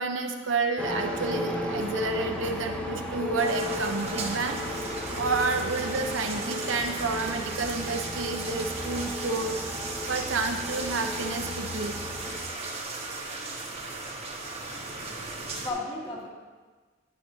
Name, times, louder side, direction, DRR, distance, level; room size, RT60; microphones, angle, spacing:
voice 1, 0.0-12.0, right 3 dB, 75° right, 4 dB, 0.9 m, -30 dB
sound 1, 0.8-12.4, left 1 dB, 5° left, 0.8 m, -35 dB
sound 2, 3.4-15.7, right 3 dB, 30° right, 1.1 m, -36 dB
voice 2, 14.8-16.3, left 2 dB, 25° left, -4 dB, 1.9 m, -37 dB
10.0 x 9.2 x 2.8 m, 1.4 s
head